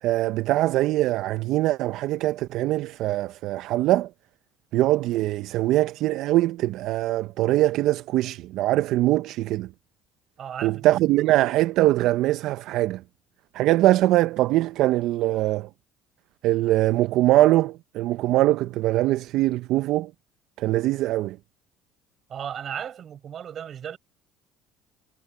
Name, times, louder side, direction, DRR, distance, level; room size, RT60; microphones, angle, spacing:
voice 1, 0.0-4.1 4.7-9.7 10.6-13.0 13.5-15.7 16.4-20.1 20.6-21.4, right 16 dB, 70° right, 0.7 m, -22 dB
voice 2, 10.4-11.0 22.3-24.0, right 9 dB, 50° right, 5.4 m, -35 dB
supercardioid pair, 75°, 0 cm